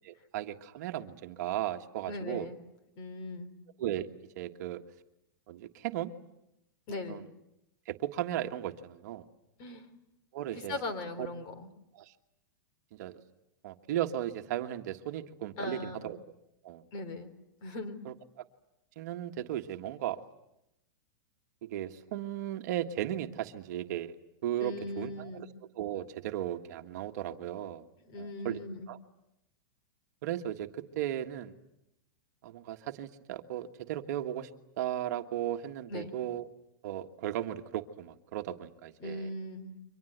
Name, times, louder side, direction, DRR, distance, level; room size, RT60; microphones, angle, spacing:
voice 1, 0.0-2.5 3.8-4.1 4.3-4.8 5.5-6.1 6.9-7.2 7.8-9.3 10.3-10.8 11.2-11.3 11.9-12.1 12.9-13.2 13.6-16.2 16.6-16.8 18.0-18.1 18.9-20.2 21.6-24.2 24.4-25.5 25.7-27.9 28.1-28.6 28.9-29.0 30.2-31.5 32.4-34.5 34.8-36.5 36.8-39.3, right 12 dB, 55° right, 6 dB, 1.6 m, -36 dB
voice 2, 2.1-2.6 3.0-3.5 6.9-7.3 9.6-9.9 10.7-11.7 15.6-16.1 16.9-17.3 17.6-18.0 24.6-25.5 28.1-28.9 35.9-36.1 39.0-39.8, left 2 dB, 35° left, 10 dB, 3.7 m, -39 dB
29.5 x 24.5 x 8.1 m, 0.85 s
supercardioid pair, 160°, 11 cm